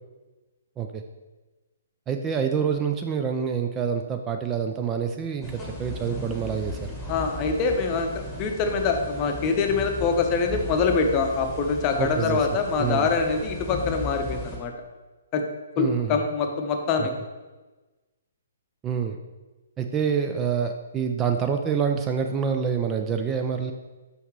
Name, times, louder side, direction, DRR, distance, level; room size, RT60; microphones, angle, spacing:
voice 1, 2.1-6.9 12.0-12.5 12.8-13.1 15.8-16.2 17.0-17.1 18.8-19.2 19.8-23.7, right 7 dB, 20° right, 5 dB, 0.3 m, -27 dB
sound 1, 5.4-14.6, left 2 dB, 5° left, 1.3 m, -36 dB
voice 2, 7.1-14.7 15.3-15.4 15.8-17.1, left 4 dB, 25° left, 4 dB, 0.7 m, -24 dB
5.6 x 5.3 x 3.1 m, 1.2 s
figure-of-eight pair, 125°, 0 cm